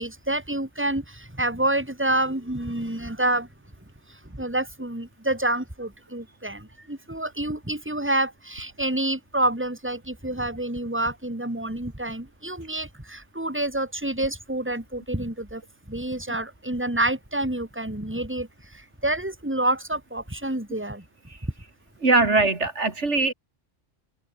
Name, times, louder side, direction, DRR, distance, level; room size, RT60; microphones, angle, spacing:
voice 1, 0.0-3.5 4.3-15.6 15.9-18.5 19.0-21.0, right 1 dB, 10° right, 3.3 m, -28 dB
voice 2, 22.0-23.3, right 3 dB, 80° right, 3.4 m, -21 dB
omnidirectional pair, 1.2 m